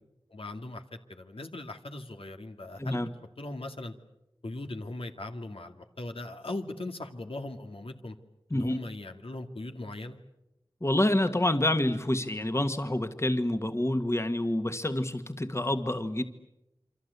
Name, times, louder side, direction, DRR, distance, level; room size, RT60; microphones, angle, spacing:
voice 1, 0.3-3.1 3.4-3.9 4.4-8.2 8.5-10.2, left 2 dB, 75° left, 5 dB, 2.3 m, -39 dB
voice 2, 10.8-16.2, left 1 dB, 30° left, 8 dB, 1.8 m, -27 dB
28.0 x 25.0 x 8.3 m, 0.89 s
wide cardioid pair, 50°, 10 cm